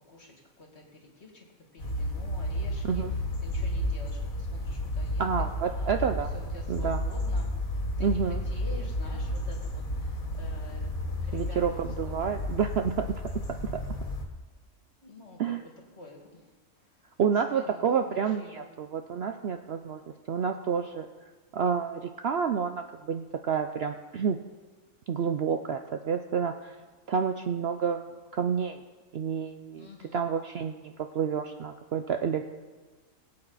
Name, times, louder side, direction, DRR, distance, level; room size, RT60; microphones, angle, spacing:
voice 1, 0.1-1.5 1.7-5.3 5.7-12.3 15.0-17.2 17.4-18.7 29.7-30.2, left 2 dB, 50° left, 0 dB, 2.4 m, -49 dB
sound 1, 1.8-14.2, left 1 dB, 75° left, 2.1 m, -32 dB
voice 2, 5.2-6.3 6.7-7.0 8.0-8.4 11.3-13.1 13.7-13.8 15.4-15.6 17.2-21.1 21.5-24.4 25.1-26.7 27.1-28.0 28.3-28.8 29.1-29.9 30.1-32.4, right 7 dB, 60° right, 7 dB, 0.7 m, -29 dB
20.5 x 8.6 x 4.0 m, 1.3 s
omnidirectional pair, 1.5 m